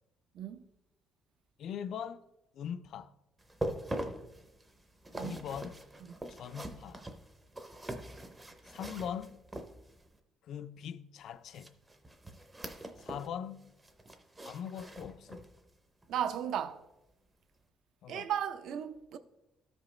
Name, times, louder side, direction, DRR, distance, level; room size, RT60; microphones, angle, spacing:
voice 1, 1.6-2.3 2.5-3.1 5.1-5.7 6.3-7.0 8.7-9.4 10.4-11.8 13.0-13.7 14.4-15.4 18.0-18.3, left 8 dB, 55° left, 0.3 m, -41 dB
sound 1, 3.4-10.1 11.5-13.3 13.6-15.6 16.0-16.2 16.7-16.8, right 1 dB, 10° right, 0.5 m, -43 dB
voice 2, 16.1-16.8 18.1-19.2, right 9 dB, 60° right, 0.5 m, -35 dB
13.5 x 5.2 x 3.1 m
cardioid pair, 180°, 0 cm